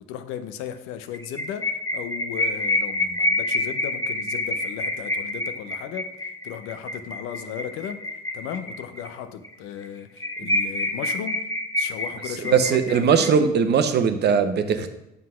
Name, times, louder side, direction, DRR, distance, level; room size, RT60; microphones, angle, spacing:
voice 1, 0.1-6.1 6.4-8.0 8.3-11.4 11.8-13.3, left 9 dB, 80° left, 10 dB, 0.7 m, -35 dB
sound 1, 1.1-9.1 9.4-9.5 9.8-9.9 10.2-13.3, left 2 dB, 15° left, 1.1 m, -27 dB
voice 2, 12.4-14.9, right 6 dB, 55° right, 8 dB, 0.8 m, -20 dB
7.5 x 4.0 x 5.5 m, 0.87 s
supercardioid pair, 70°, 21 cm